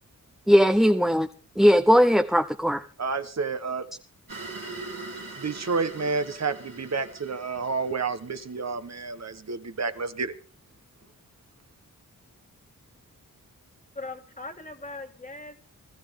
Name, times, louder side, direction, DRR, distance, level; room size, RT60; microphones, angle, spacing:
voice 1, 0.5-1.3 1.5-2.8, equal, ahead, 6 dB, 0.7 m, -19 dB
voice 2, 3.0-3.9 5.1-10.3, right 4 dB, 50° right, 10 dB, 1.2 m, -30 dB
sound 1, 4.3-8.9, right 3 dB, 75° right, 3.2 m, -41 dB
voice 3, 14.0-15.6, left 2 dB, 25° left, 6 dB, 2.0 m, -39 dB
20.5 x 13.5 x 3.7 m, 0.37 s
wide cardioid pair, 75°, 34 cm